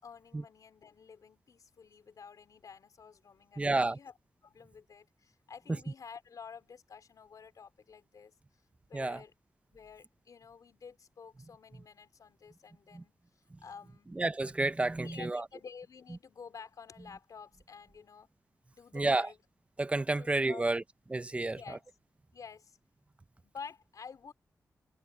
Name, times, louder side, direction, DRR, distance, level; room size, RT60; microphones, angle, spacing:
voice 1, 0.0-4.1 4.4-8.3 8.8-9.3 9.7-13.1 13.6-14.1 14.9-18.3 18.7-19.4 20.2-20.8 21.5-21.8 22.3-22.8 23.4-24.3, left 6 dB, 65° left, 4.0 m, -50 dB
voice 2, 3.6-4.0 8.9-9.2 12.9-13.0 14.1-15.4 18.9-19.3 19.8-20.8 21.1-21.8, right 2 dB, 20° right, 0.7 m, -30 dB
wide cardioid pair, 135°, 6 cm